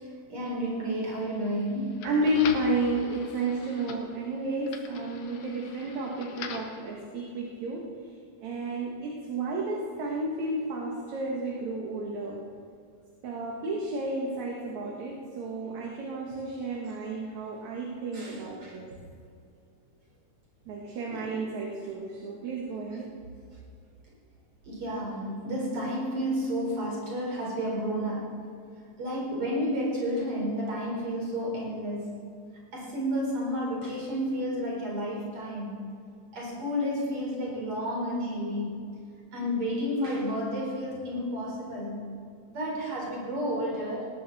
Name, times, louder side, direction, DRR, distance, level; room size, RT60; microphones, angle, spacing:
voice 1, 0.3-2.1 18.1-18.7 21.1-21.3 24.7-28.4 29.0-32.2 32.7-35.8 36.3-38.8 39.3-42.0 42.5-44.1, equal, 45° right, -4 dB, 5.3 m, -31 dB
sound 1, 0.9-6.8, left 6 dB, 85° left, 2.7 m, -44 dB
voice 2, 2.0-7.8 8.4-12.5 13.2-18.9 20.7-23.1, right 1 dB, 70° right, -2 dB, 2.8 m, -31 dB
19.0 x 17.0 x 4.2 m, 2.3 s
omnidirectional pair, 3.5 m